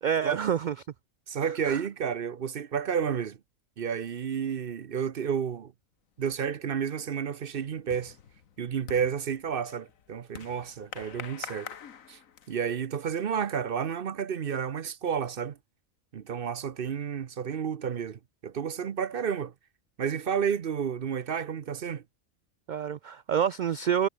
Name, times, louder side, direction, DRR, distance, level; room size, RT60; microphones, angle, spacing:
voice 1, 0.0-0.7 1.7-1.8 22.7-24.1, right 8 dB, 65° right, 0.4 m, -27 dB
voice 2, 1.3-3.4 3.8-5.7 6.2-8.2 8.6-11.7 12.1-12.2 12.5-15.6 16.1-19.5 20.0-22.0, right 7 dB, 50° right, 0.9 m, -31 dB
sound 1, 6.5-6.6 7.0-12.8, left 8 dB, 85° left, 1.6 m, -46 dB
omnidirectional pair, 1.4 m